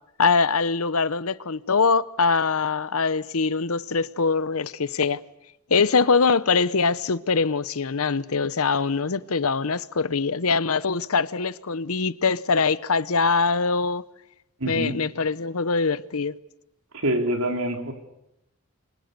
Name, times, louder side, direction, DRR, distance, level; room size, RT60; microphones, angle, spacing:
voice 1, 0.2-5.2 5.7-14.0 14.7-16.4, left 4 dB, 80° left, 0.9 m, -23 dB
voice 2, 14.6-15.0 16.9-17.9, right 1 dB, 80° right, 3.8 m, -25 dB
29.5 x 24.5 x 6.8 m
head